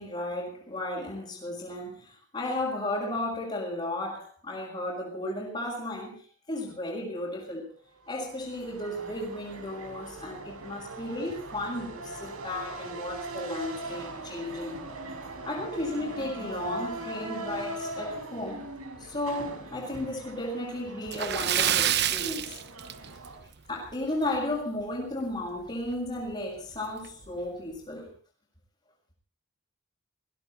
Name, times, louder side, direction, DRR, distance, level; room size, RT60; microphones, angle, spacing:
voice 1, 0.0-7.7 8.1-14.8 15.5-18.7 19.0-22.6 23.7-28.1, left 1 dB, 25° left, 5.4 m, -34 dB
sound 1, 8.1-23.4, right 2 dB, 85° right, 5.1 m, -40 dB
Splash splatter, 21.1-23.4 23.8-23.9 24.4-24.5 25.9-26.0 26.3-26.4 27.0-27.3, right 10 dB, 50° right, 1.0 m, -27 dB
21.0 x 16.0 x 4.1 m
head